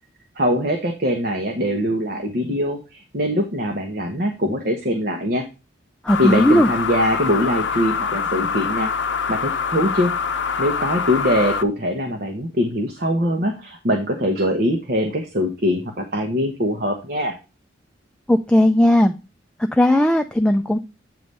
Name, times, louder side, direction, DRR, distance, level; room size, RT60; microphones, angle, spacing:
voice 1, 0.4-5.4 6.2-8.9 9.3-10.1 10.6-17.4, equal, 50° right, 4 dB, 0.9 m, -22 dB
voice 2, 6.0-6.7 18.3-19.1 19.7-20.8, left 1 dB, 5° left, 5 dB, 0.3 m, -16 dB
sound 1, 6.1-11.6, left 6 dB, 75° left, 0.6 m, -24 dB
8.7 x 3.3 x 5.3 m, 0.28 s
head